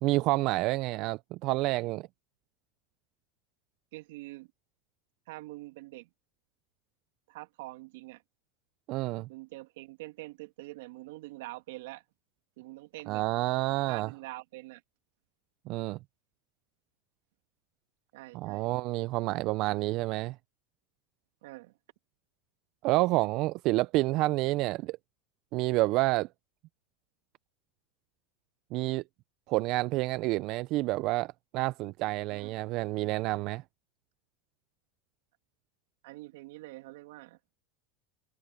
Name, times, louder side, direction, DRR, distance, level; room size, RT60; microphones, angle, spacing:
voice 1, 0.0-2.1 8.9-9.3 13.1-14.1 15.7-16.0 18.3-20.4 22.8-25.0 25.5-26.3 28.7-29.0 29.5-33.6, right 20 dB, 50° right, 0.4 m, -29 dB
voice 2, 3.9-4.5 5.3-6.1 7.3-8.2 9.3-12.0 12.6-13.3 13.9-14.8 18.1-18.8 21.4-21.8 32.3-32.6 36.0-37.4, right 20 dB, 75° right, 2.3 m, -45 dB
supercardioid pair, 130°, 0 cm